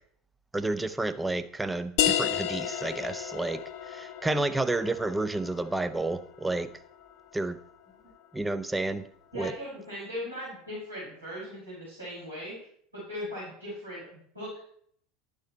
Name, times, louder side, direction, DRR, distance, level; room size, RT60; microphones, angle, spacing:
voice 1, 0.5-3.6 3.9-6.7 7.3-7.6 8.3-9.0 9.3-9.5, right 2 dB, 10° right, 11 dB, 0.6 m, -30 dB
sound 1, 2.0-7.3, left 10 dB, 55° left, 0.6 m, -33 dB
voice 2, 9.3-12.5 12.9-14.6, equal, 85° right, -8 dB, 4.8 m, -38 dB
11.5 x 6.3 x 4.2 m, 0.64 s
figure-of-eight pair, 75°, 0 cm